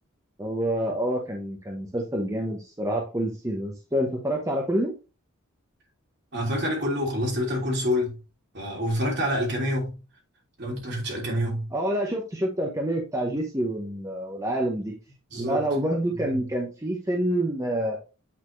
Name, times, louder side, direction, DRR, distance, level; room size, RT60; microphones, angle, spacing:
voice 1, 0.4-4.9 11.7-14.9 15.4-18.0, right 1 dB, 15° right, 1.0 m, -27 dB
voice 2, 6.3-8.2 8.5-9.9 10.6-11.7 15.3-15.6 16.1-16.4, equal, 55° right, 3.0 m, -27 dB
8.5 x 4.2 x 3.2 m
head